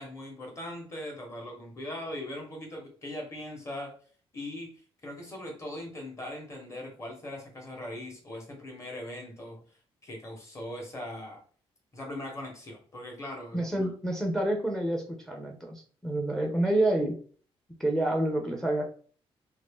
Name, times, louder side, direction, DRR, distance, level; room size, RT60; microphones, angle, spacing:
voice 1, 0.0-3.9 4.3-4.7 5.0-9.6 10.0-11.4 11.9-13.9, left 1 dB, 30° left, 1 dB, 1.1 m, -40 dB
voice 2, 13.5-17.2 17.8-18.8, right 1 dB, 5° left, 1 dB, 0.5 m, -28 dB
2.9 x 2.7 x 3.5 m, 0.44 s
cardioid pair, 155°, 10 cm